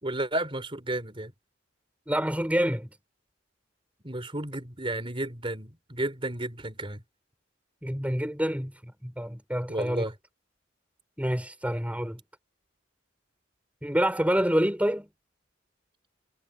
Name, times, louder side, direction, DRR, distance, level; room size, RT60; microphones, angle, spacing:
voice 1, 0.0-1.3 4.0-7.0 9.7-10.1, right 1 dB, 25° right, 3.9 m, -32 dB
voice 2, 2.1-2.9 7.8-8.7 9.0-10.0 11.2-12.2 13.8-15.1, equal, 5° right, 5.9 m, -27 dB
head